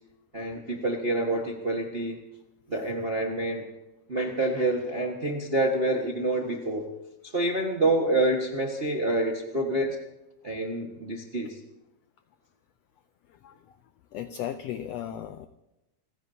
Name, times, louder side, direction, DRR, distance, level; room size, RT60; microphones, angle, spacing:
voice 1, 0.3-2.2 2.7-3.6 4.1-6.9 7.2-9.9 10.4-11.6, right 2 dB, 50° right, 0 dB, 0.6 m, -27 dB
voice 2, 14.1-15.5, left 10 dB, 90° left, 10 dB, 1.4 m, -36 dB
29.5 x 15.5 x 2.8 m, 0.94 s
omnidirectional pair, 3.6 m